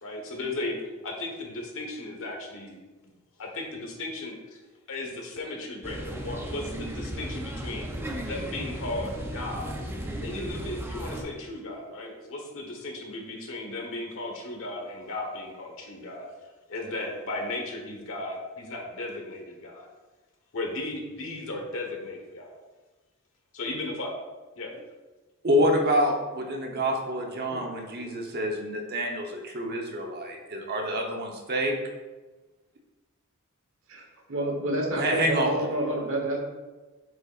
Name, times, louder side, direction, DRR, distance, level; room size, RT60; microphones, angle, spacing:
voice 1, 0.0-2.8 3.0-3.1 3.4-4.6 4.9-7.9 8.2-9.7 10.2-16.3 16.7-19.9 20.5-22.5 23.5-24.1 24.6-24.7, left 2 dB, 65° left, 1 dB, 1.3 m, -36 dB
sound 1, 5.8-11.2, right 1 dB, 10° right, 0.6 m, -35 dB
voice 2, 25.4-31.7 35.0-35.5, equal, 45° right, 2 dB, 1.0 m, -27 dB
voice 3, 34.3-36.4, right 1 dB, 65° right, 1 dB, 1.2 m, -29 dB
7.6 x 5.5 x 2.5 m, 1.2 s
head